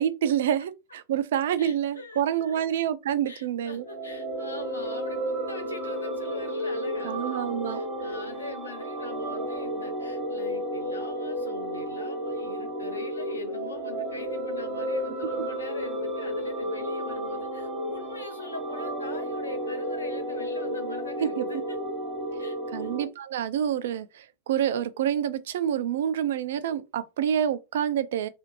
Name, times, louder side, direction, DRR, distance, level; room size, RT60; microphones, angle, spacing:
voice 1, 0.0-3.9 7.0-7.8 21.2-21.4 22.7-28.3, right 9 dB, 60° right, 0.3 m, -27 dB
voice 2, 1.6-2.8 3.3-21.8 22.4-22.9, left 3 dB, 80° left, 0.7 m, -43 dB
sound 1, 3.7-23.0, equal, 5° left, 1.1 m, -32 dB
2.5 x 2.4 x 2.8 m
figure-of-eight pair, 90°, 0 cm